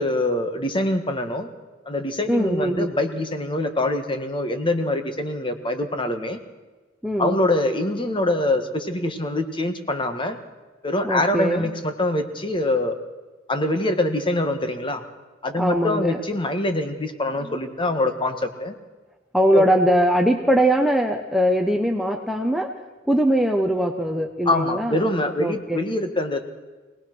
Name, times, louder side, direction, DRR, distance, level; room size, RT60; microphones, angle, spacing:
voice 1, 0.0-1.5 1.9-6.4 7.2-10.4 10.8-13.0 13.5-15.0 15.4-18.7 19.5-19.7 24.5-26.5, left 1 dB, 25° left, 7 dB, 1.7 m, -24 dB
voice 2, 2.3-3.0 7.0-7.4 11.0-11.7 15.5-16.2 19.3-22.8 23.1-25.1 25.4-25.8, equal, ahead, 3 dB, 0.9 m, -21 dB
24.0 x 18.5 x 6.2 m, 1.3 s
head